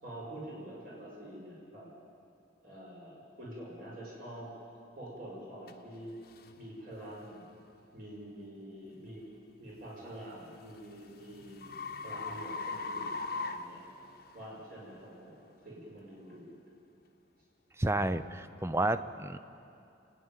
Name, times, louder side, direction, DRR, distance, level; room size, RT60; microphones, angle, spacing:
voice 1, 0.0-1.9 2.6-4.5 5.0-6.1 6.6-7.5 7.9-9.2 9.6-13.8 14.3-16.5, right 1 dB, 50° right, -5 dB, 5.5 m, -46 dB
sound 1, 5.7-5.8 6.3-6.5 7.1-7.4 10.0-14.5, left 3 dB, 50° left, 1.0 m, -40 dB
voice 2, 17.8-19.4, right 2 dB, 15° right, 12 dB, 0.5 m, -31 dB
29.0 x 10.0 x 9.1 m, 2.6 s
head